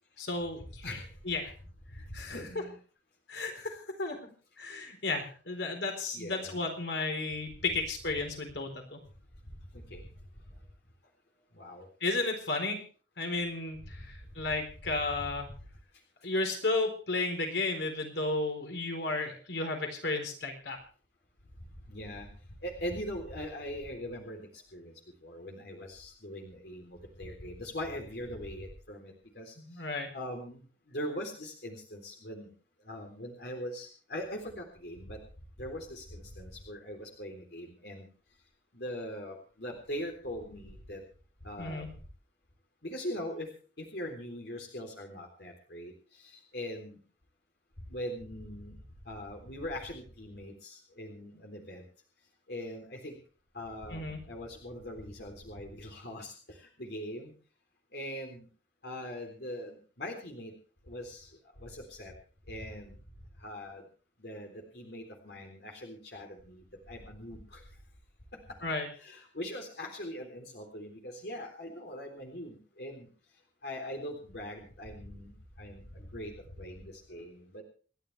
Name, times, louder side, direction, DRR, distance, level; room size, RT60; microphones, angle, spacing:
voice 1, 0.2-0.8 1.3-1.5 2.1-2.4 3.3-4.2 4.6-9.0 12.0-12.8 13.2-15.5 16.2-20.8 29.6-30.1 41.6-42.0 53.9-54.2 68.6-68.9, left 3 dB, 80° left, 4 dB, 4.1 m, -33 dB
voice 2, 2.3-2.8 6.1-6.6 9.7-10.0 11.5-11.9 21.9-22.3 22.6-24.4 24.7-24.9 25.2-29.5 30.1-30.6 30.9-32.5 32.9-35.2 35.6-38.1 38.7-41.0 41.4-41.8 42.8-43.5 43.8-45.9 46.5-47.0 47.9-48.8 49.1-51.8 52.5-53.2 53.5-56.3 56.6-57.3 57.9-58.5 58.8-60.5 60.9-61.3 61.6-62.1 62.5-62.9 63.4-63.8 64.2-67.6 69.0-73.1 73.6-75.3 75.6-77.6, equal, 65° left, 2 dB, 3.7 m, -41 dB
28.5 x 11.5 x 3.4 m, 0.40 s
head